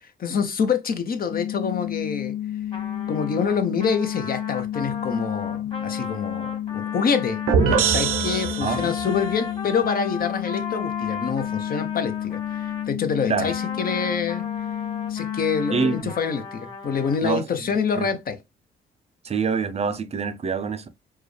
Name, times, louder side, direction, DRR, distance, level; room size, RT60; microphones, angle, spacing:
voice 1, 0.0-2.4 3.1-7.4 7.7-14.5 15.1-18.4, left 6 dB, 50° left, 0.9 m, -26 dB
sound 1, 1.3-16.0, left 11 dB, 80° left, 0.6 m, -31 dB
Trumpet, 2.7-12.9 13.4-17.2, left 4 dB, 25° left, 1.8 m, -36 dB
sound 2, 7.5-9.2, right 7 dB, 85° right, 0.8 m, -22 dB
voice 2, 8.6-8.9 13.3-13.5 15.7-16.1 17.2-17.4 18.0-18.1 19.2-20.9, right 5 dB, 30° right, 0.6 m, -25 dB
4.6 x 2.4 x 3.2 m
cardioid pair, 90°, 20 cm